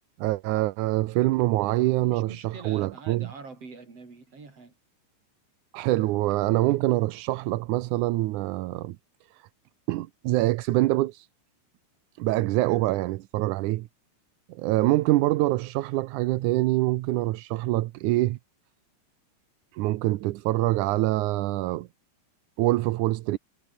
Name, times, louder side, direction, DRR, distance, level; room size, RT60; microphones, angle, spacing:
voice 1, 0.2-3.3 5.7-9.0 9.9-11.3 12.2-13.9 14.5-18.4 19.7-21.9 22.6-23.4, right 17 dB, 75° right, 2.0 m, -25 dB
voice 2, 1.9-4.7, right 4 dB, 45° right, 6.1 m, -44 dB
omnidirectional pair, 4.0 m